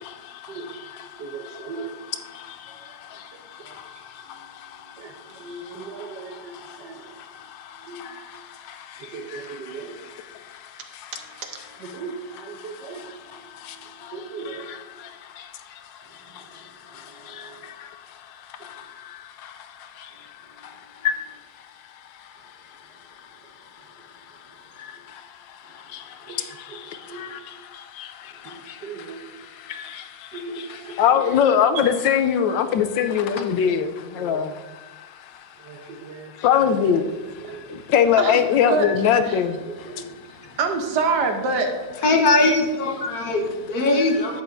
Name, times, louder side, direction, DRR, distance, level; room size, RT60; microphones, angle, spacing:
voice 1, 0.0-1.7 2.3-11.1 11.9-12.0 12.6-21.2 22.2-22.3 24.8-35.5 36.4-40.0, left 8 dB, 90° left, 1.4 m, -27 dB
voice 2, 1.2-1.9 2.7-2.9 3.6-3.7 4.4-4.5 5.0-7.1 7.9-8.1 9.0-10.0 11.1-13.1 13.7-14.7 17.2-17.5 26.2-26.4 26.7-27.3 28.4-28.6 28.8-29.2 30.3-31.4 31.7-31.9 32.8-33.8 34.2-34.4 35.6-36.3 36.6-37.8 38.2-38.9 39.2-39.4 39.6-40.1 40.6-41.7 42.0-42.1, right 4 dB, 70° right, 1.5 m, -32 dB
voice 3, 42.0-44.4, left 2 dB, 60° left, 1.4 m, -20 dB
11.0 x 8.1 x 2.6 m
omnidirectional pair, 1.9 m